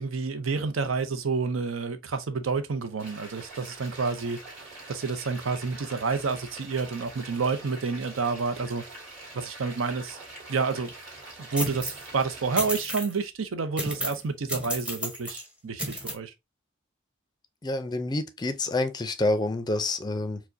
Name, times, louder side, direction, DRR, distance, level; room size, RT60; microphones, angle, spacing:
voice 1, 0.0-4.4 4.9-8.8 9.3-10.2 10.5-10.9 11.4-16.3, right 4 dB, 80° right, 0.6 m, -29 dB
sound 1, 3.0-12.7, right 2 dB, 45° right, 2.0 m, -44 dB
sound 2, 11.6-12.1 12.6-13.1 13.8-14.2 14.5-15.4 15.8-16.1, equal, 5° right, 0.7 m, -32 dB
voice 2, 17.6-20.4, left 2 dB, 20° left, 0.4 m, -28 dB
4.6 x 2.1 x 2.6 m
head